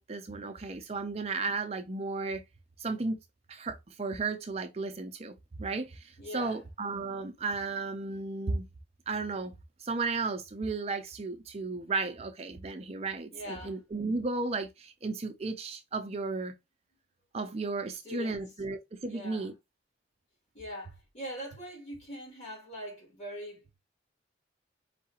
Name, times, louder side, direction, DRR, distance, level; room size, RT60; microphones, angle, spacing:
voice 1, 0.0-2.4 2.8-3.2 3.5-8.6 9.1-9.5 9.8-16.5 17.3-19.5, right 3 dB, 35° right, 0.5 m, -34 dB
voice 2, 6.2-6.7 13.3-13.8 17.8-18.4 19.0-19.5 20.5-23.8, equal, 35° left, 2.7 m, -42 dB
4.7 x 3.3 x 2.8 m
head